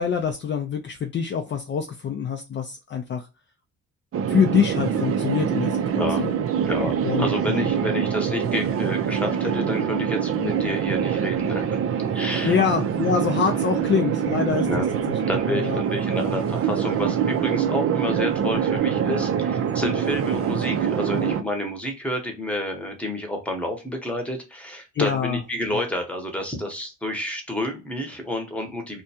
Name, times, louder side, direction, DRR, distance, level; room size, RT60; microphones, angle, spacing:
voice 1, 0.0-3.3 4.3-6.3 7.0-7.7 12.4-15.2 15.5-15.8 24.9-25.4 25.7-25.8, left 7 dB, 40° left, 5 dB, 0.4 m, -25 dB
sound 1, 4.1-21.4, right 8 dB, 50° right, 0.5 m, -24 dB
voice 2, 6.0-6.3 6.6-11.8 12.1-12.6 14.6-14.9 15.3-29.0, left 1 dB, 5° left, 3 dB, 0.9 m, -29 dB
2.5 x 2.2 x 2.7 m, 0.29 s
cardioid pair, 90°, 30 cm